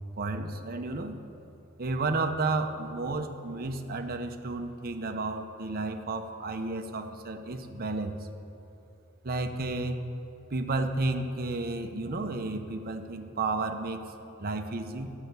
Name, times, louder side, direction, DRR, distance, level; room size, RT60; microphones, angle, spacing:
voice 1, 0.2-1.2 1.8-8.2 9.2-10.0 10.5-14.0 14.4-15.1, right 3 dB, 40° right, 6 dB, 0.7 m, -32 dB
12.5 x 5.6 x 8.1 m, 2.8 s
head